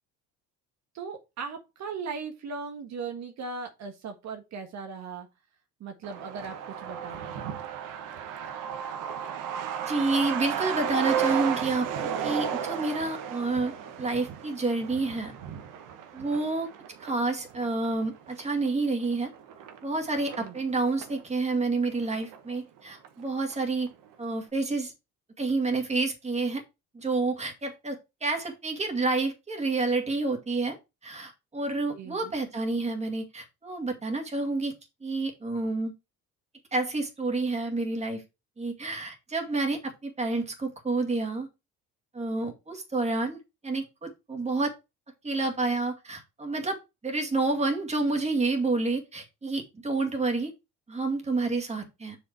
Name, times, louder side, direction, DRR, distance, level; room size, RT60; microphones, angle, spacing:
voice 1, 0.9-5.3 5.8-7.6 20.4-20.6 31.9-32.3, right 5 dB, 60° right, 1.5 m, -38 dB
Truck, 6.0-21.2 21.5-21.6 21.9-22.8 23.0-23.1 23.5-23.9, right 8 dB, 85° right, 1.3 m, -34 dB
voice 2, 9.8-15.3 16.1-16.7 17.0-19.3 19.8-23.9 24.2-24.9 25.4-26.6 26.9-30.8 31.0-34.7 35.0-35.9 36.7-38.2 38.6-41.5 42.1-43.4 43.6-44.7 45.2-50.5 50.9-52.2, right 3 dB, 20° right, 2.3 m, -29 dB
6.5 x 5.3 x 4.4 m
cardioid pair, 115°, 31 cm